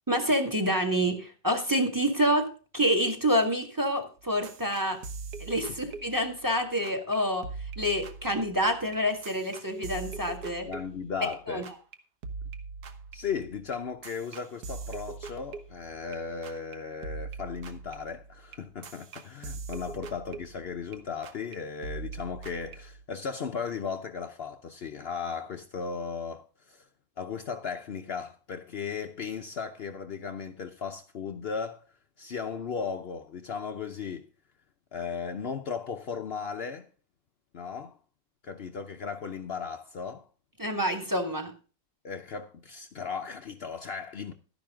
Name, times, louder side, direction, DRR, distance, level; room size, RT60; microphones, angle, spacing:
voice 1, 0.1-5.0 5.4-7.4 7.8-10.7 11.5-11.6 40.6-41.5, equal, 10° right, 1.6 m, -27 dB
sound 1, 4.2-6.6 6.8-7.2 7.4-11.4 11.6-11.9 12.2-16.2 16.4-16.7 17.0-21.0 21.2-21.6 21.8-23.0, right 4 dB, 60° right, 1.6 m, -42 dB
voice 2, 10.7-11.7 13.1-26.9 27.2-31.9 32.2-34.3 34.9-36.9 37.5-38.0 38.4-40.2 42.0-44.3, left 6 dB, 80° left, 0.5 m, -36 dB
12.0 x 10.5 x 3.7 m
omnidirectional pair, 2.0 m